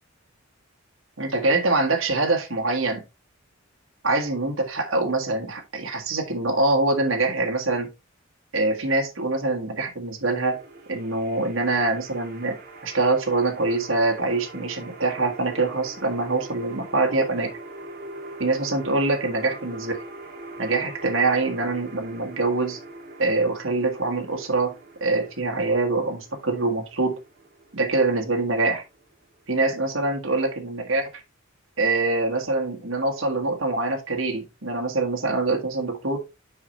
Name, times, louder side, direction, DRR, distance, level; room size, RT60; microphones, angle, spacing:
voice 1, 1.2-3.0 4.0-7.9 8.5-10.6 10.9-12.6 12.8-17.5 18.4-19.9 20.6-22.8 23.2-24.7 25.0-27.2 27.7-28.8 29.5-31.1 31.8-36.2, right 2 dB, 70° right, 1.7 m, -24 dB
sound 1, 10.5-29.5, right 2 dB, 50° right, 1.6 m, -43 dB
7.1 x 5.8 x 3.2 m
head